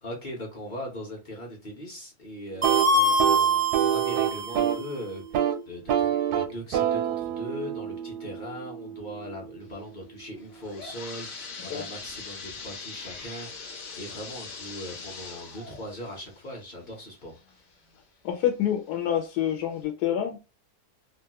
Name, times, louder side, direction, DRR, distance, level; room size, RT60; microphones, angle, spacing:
voice 1, 0.0-17.6, equal, 40° left, 0.7 m, -40 dB
sound 1, 2.5-4.9 5.2-5.6 5.9-9.7, right 9 dB, 85° right, 1.1 m, -28 dB
sound 2, 2.6-5.0, right 2 dB, 20° right, 0.5 m, -24 dB
sound 3, 10.4-18.0 18.5-18.6 19.3-19.4 19.8-19.9, left 4 dB, 65° left, 1.0 m, -42 dB
voice 2, 18.2-20.4, left 10 dB, 85° left, 1.1 m, -27 dB
3.0 x 2.3 x 2.8 m
omnidirectional pair, 1.7 m